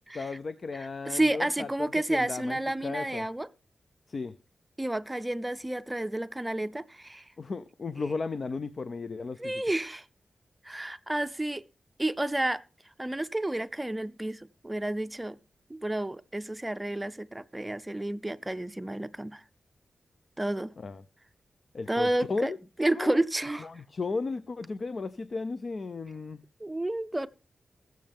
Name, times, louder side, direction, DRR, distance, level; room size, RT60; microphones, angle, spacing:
voice 1, 0.1-3.3 4.1-4.3 7.4-9.5 20.8-21.0 21.7-22.6 22.9-23.2 23.6-26.4, left 4 dB, 55° left, 0.6 m, -35 dB
voice 2, 0.7-3.5 4.8-7.2 9.4-10.0 10.6-11.6 12.0-12.6 13.0-15.4 15.7-19.4 20.4-20.7 21.9-22.5 22.8-23.7 26.6-27.3, right 1 dB, 15° right, 0.6 m, -30 dB
19.5 x 7.7 x 3.5 m
cardioid pair, 75°, 0 cm